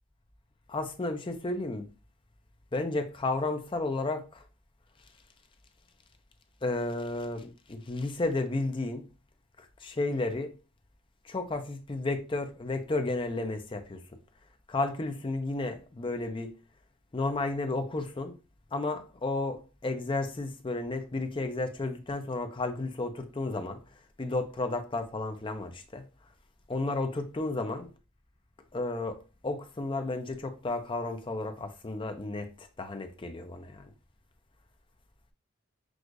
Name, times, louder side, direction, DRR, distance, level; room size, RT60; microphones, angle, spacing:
voice 1, 0.7-1.9 2.7-4.4 6.6-9.1 9.6-10.5 11.2-14.0 14.7-16.5 17.1-18.3 18.7-23.8 24.2-26.0 26.7-27.9 28.7-29.2 29.4-33.9, left 2 dB, 25° left, 0.5 m, -32 dB
6.2 x 2.5 x 2.5 m
head